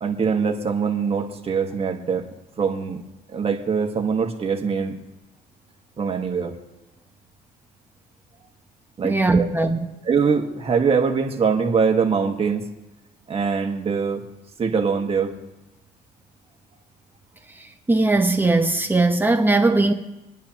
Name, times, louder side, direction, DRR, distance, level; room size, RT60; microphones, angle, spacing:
voice 1, 0.0-2.3 2.6-3.0 3.3-5.0 6.0-6.5 9.0-9.5 10.0-12.7 13.3-14.2 14.6-15.3, right 5 dB, 35° right, 1.6 m, -23 dB
voice 2, 9.0-9.8 17.9-19.9, right 2 dB, 10° right, 1.0 m, -19 dB
27.5 x 10.0 x 3.0 m
cardioid pair, 110°, 17 cm